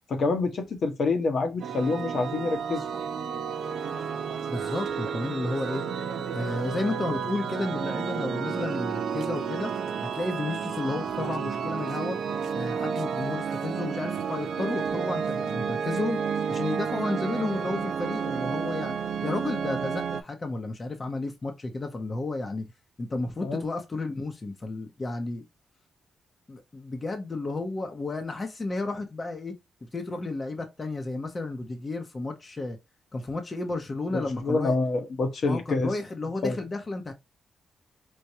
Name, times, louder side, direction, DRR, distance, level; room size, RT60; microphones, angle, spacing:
voice 1, 0.1-2.8 23.4-23.6 34.1-35.9 36.4-36.6, left 3 dB, 60° left, 1.0 m, -27 dB
sound 1, 1.6-20.2, right 6 dB, 75° right, 0.5 m, -31 dB
voice 2, 4.5-5.8 6.3-9.7 10.1-12.2 12.5-22.6 23.0-25.4 26.5-29.5 29.9-32.8 33.1-34.8 35.5-37.1, left 2 dB, 30° left, 0.8 m, -32 dB
4.7 x 2.2 x 2.7 m
cardioid pair, 95°, 0 cm